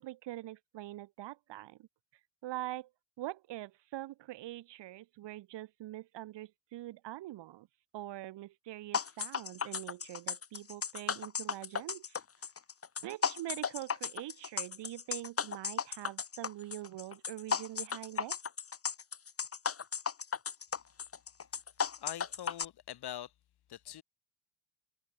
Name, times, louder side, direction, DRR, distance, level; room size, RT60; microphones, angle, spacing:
voice 1, 0.0-1.9 2.4-2.9 3.2-7.7 7.9-12.2 13.0-18.4, right 15 dB, 60° right, 3.4 m, -44 dB
sound 1, 8.9-22.7, left 6 dB, 30° left, 2.2 m, -35 dB
voice 2, 22.0-23.3 23.7-24.0, left 11 dB, 55° left, 6.7 m, -43 dB
supercardioid pair, 75°, 47 cm